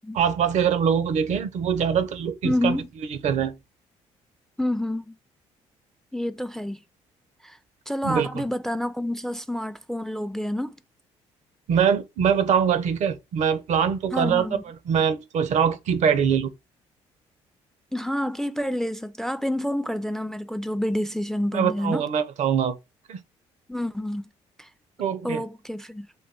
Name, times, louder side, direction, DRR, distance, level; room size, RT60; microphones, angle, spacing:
voice 1, 0.1-2.8 3.2-3.6 8.0-8.4 11.7-16.5 21.5-22.8 23.1-23.2 25.0-25.4, right 7 dB, 60° right, 0.5 m, -23 dB
voice 2, 2.4-2.9 4.6-5.1 6.1-6.8 7.4-7.6 7.9-10.7 14.1-14.6 17.9-22.0 23.7-24.2 24.6-24.7 25.2-26.1, left 1 dB, 5° left, 0.3 m, -28 dB
2.6 x 2.3 x 3.7 m
supercardioid pair, 60°, 13 cm